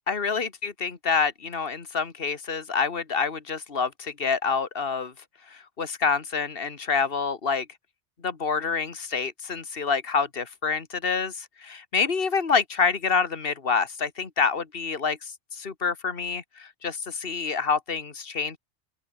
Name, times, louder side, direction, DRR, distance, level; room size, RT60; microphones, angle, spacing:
voice 1, 0.1-5.1 5.8-7.7 8.2-15.3 15.6-18.6, left 5 dB, 50° left, 2.1 m, -27 dB
open air
omnidirectional pair, 1.2 m